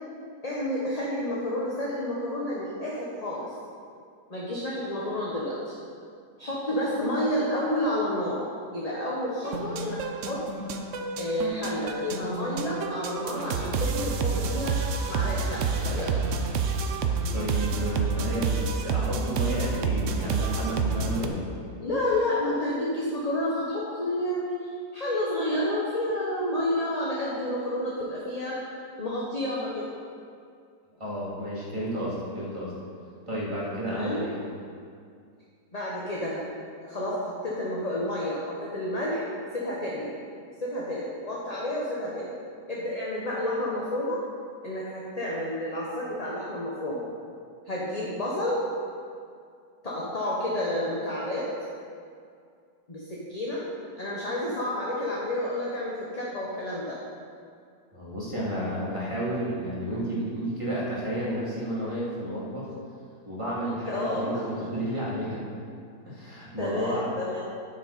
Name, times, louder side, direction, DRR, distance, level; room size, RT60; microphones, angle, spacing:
voice 1, 0.4-3.5 4.3-5.7 6.4-8.4 8.7-10.4 11.2-14.8 15.1-16.1 21.8-28.6 29.0-29.9 33.8-34.2 35.7-36.4 36.8-39.2 39.5-40.1 40.6-42.3 42.7-44.2 44.6-47.0 47.7-48.7 49.8-51.5 52.9-53.6 54.0-57.0 63.9-64.4 66.6-67.4, left 1 dB, 25° left, -5 dB, 1.2 m, -30 dB
sound 1, 9.4-21.3, right 4 dB, 60° right, 0.8 m, -29 dB
voice 2, 17.3-21.4 31.0-32.7 33.3-34.4 57.9-62.7 63.2-65.4 66.0-67.1, equal, 15° right, -8 dB, 2.8 m, -31 dB
10.0 x 9.3 x 4.3 m, 2.3 s
omnidirectional pair, 1.8 m